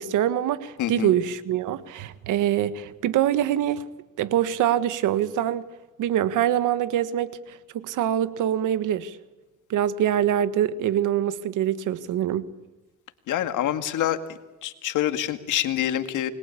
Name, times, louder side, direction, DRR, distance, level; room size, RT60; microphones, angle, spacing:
voice 1, 0.0-3.8 4.2-5.6 6.0-9.2 9.7-12.4, right 11 dB, 85° right, 1.6 m, -24 dB
voice 2, 0.8-1.1 13.3-14.2 14.6-16.3, left 12 dB, 85° left, 2.1 m, -26 dB
29.0 x 21.5 x 8.5 m
cardioid pair, 90°, 30 cm